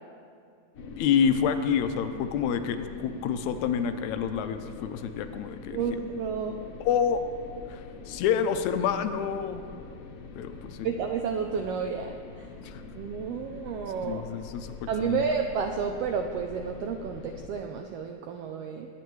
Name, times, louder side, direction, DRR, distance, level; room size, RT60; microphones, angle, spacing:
sound 1, 0.7-17.5, left 4 dB, 65° left, 1.8 m, -44 dB
voice 1, 1.0-5.8 6.8-7.2 7.7-7.8 8.1-9.6 10.4-10.9 12.6-12.8 14.0-15.2, left 7 dB, 80° left, 9 dB, 1.9 m, -28 dB
voice 2, 5.7-6.5 10.8-12.5 12.9-14.2 14.9-18.9, right 6 dB, 85° right, 4 dB, 1.4 m, -31 dB
20.5 x 9.4 x 3.2 m, 2.4 s
omnidirectional pair, 3.4 m